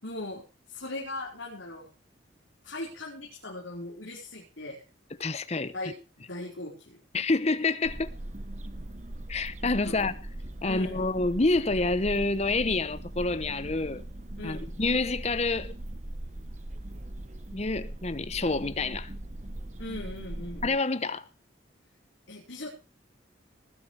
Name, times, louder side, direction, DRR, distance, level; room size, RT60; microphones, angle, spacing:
voice 1, 0.0-1.9 2.6-4.8 5.7-7.0 9.8-10.1 10.6-11.1 14.4-14.7 19.8-20.7 22.3-22.7, left 2 dB, 75° left, 4.5 m, -39 dB
voice 2, 5.2-5.7 7.1-8.1 9.3-10.2 10.6-14.0 14.4-15.8 17.5-19.1 20.6-21.3, left 3 dB, 35° left, 0.9 m, -28 dB
sound 1, 7.8-20.7, right 1 dB, 35° right, 1.1 m, -40 dB
19.5 x 9.6 x 4.8 m
head